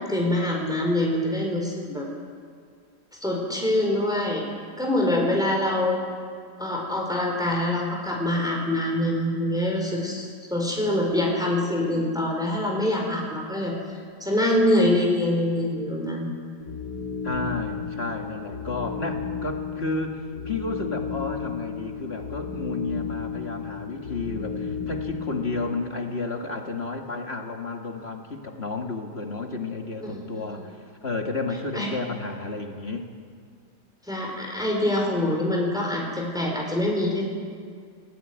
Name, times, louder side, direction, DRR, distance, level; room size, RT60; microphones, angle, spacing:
voice 1, 0.0-2.1 3.2-4.5 4.8-5.9 6.6-13.7 14.2-16.3 30.0-30.4 31.7-31.9 34.1-37.2, left 1 dB, ahead, -1 dB, 4.3 m, -25 dB
sound 1, 16.6-25.8, left 6 dB, 70° left, 2.9 m, -33 dB
voice 2, 17.2-33.1, left 3 dB, 35° left, 3 dB, 2.0 m, -32 dB
24.0 x 16.5 x 9.4 m, 2.1 s
omnidirectional pair, 1.8 m